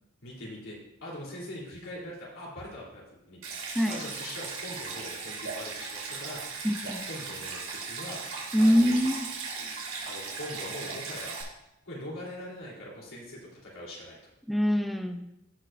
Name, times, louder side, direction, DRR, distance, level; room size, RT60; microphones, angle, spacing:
voice 1, 0.2-8.2 8.6-9.0 9.6-9.7 10.0-11.4 11.8-14.2, left 1 dB, 80° left, -4 dB, 3.1 m, -42 dB
Stream, 3.4-11.4, right 4 dB, 90° right, 2.2 m, -37 dB
voice 2, 6.6-7.0 8.5-9.3 14.5-15.2, equal, ahead, 5 dB, 0.6 m, -24 dB
16.0 x 5.6 x 2.5 m, 0.86 s
head